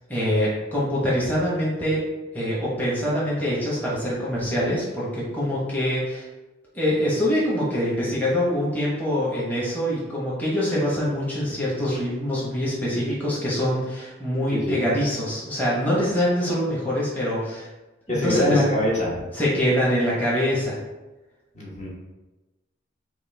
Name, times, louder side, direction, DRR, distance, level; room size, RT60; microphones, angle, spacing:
voice 1, 0.1-2.0 2.3-6.2 6.7-17.7 18.1-18.6 19.3-20.8, equal, 10° left, -7 dB, 1.1 m, -24 dB
voice 2, 14.5-14.8 18.1-19.1 21.5-21.9, left 1 dB, 40° left, -5 dB, 1.2 m, -23 dB
6.2 x 2.4 x 3.4 m, 1.1 s
head